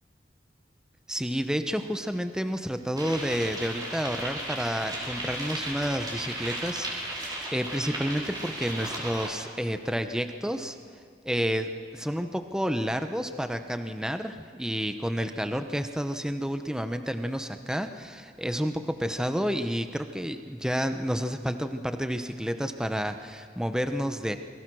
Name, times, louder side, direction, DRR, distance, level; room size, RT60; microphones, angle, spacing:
voice 1, 1.1-10.8 11.2-24.4, equal, 5° right, 8 dB, 0.8 m, -30 dB
sound 1, 3.0-9.3, right 1 dB, 25° right, 4.5 m, -35 dB
27.5 x 22.5 x 6.3 m, 2.1 s
head